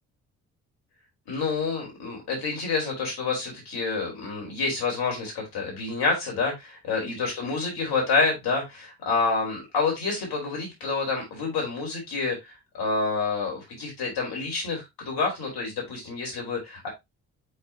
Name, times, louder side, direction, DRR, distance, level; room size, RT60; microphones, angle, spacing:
voice 1, 1.3-12.5 12.8-16.9, left 4 dB, 60° left, 0 dB, 4.7 m, -28 dB
8.5 x 4.2 x 2.9 m, 0.19 s
hypercardioid pair, 45°, 42 cm